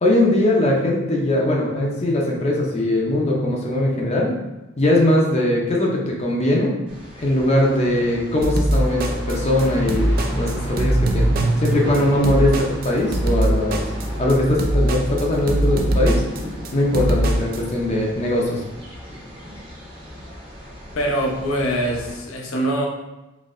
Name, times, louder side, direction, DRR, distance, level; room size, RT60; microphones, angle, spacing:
voice 1, 0.0-4.3 4.8-6.8 7.2-11.3 11.6-13.8 14.2-16.2 16.7-18.6, left 1 dB, 30° left, -1 dB, 0.5 m, -20 dB
sound 1, 6.9-22.2, equal, 25° right, 0.8 m, -37 dB
sound 2, 8.4-17.6, right 1 dB, 45° right, 0.4 m, -22 dB
sound 3, 8.7-14.3, right 2 dB, 90° right, 0.9 m, -29 dB
voice 2, 20.9-22.9, right 1 dB, 85° left, 0 dB, 0.7 m, -23 dB
4.0 x 2.8 x 2.5 m, 1.1 s
head